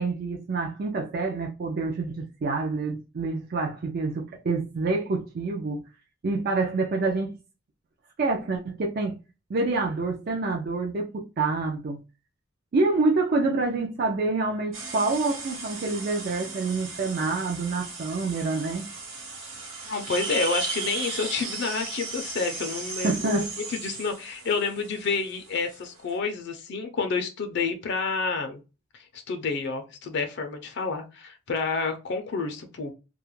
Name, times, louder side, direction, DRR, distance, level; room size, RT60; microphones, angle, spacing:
voice 1, 0.0-5.8 6.2-7.4 8.2-9.2 9.5-12.0 12.7-18.9 23.0-23.5, right 3 dB, 50° right, 0.4 m, -27 dB
sound 1, 14.7-26.1, right 4 dB, 75° right, 1.1 m, -36 dB
voice 2, 19.8-23.4 23.7-28.6 29.1-32.9, left 4 dB, 60° left, 0.4 m, -29 dB
2.3 x 2.1 x 3.0 m
head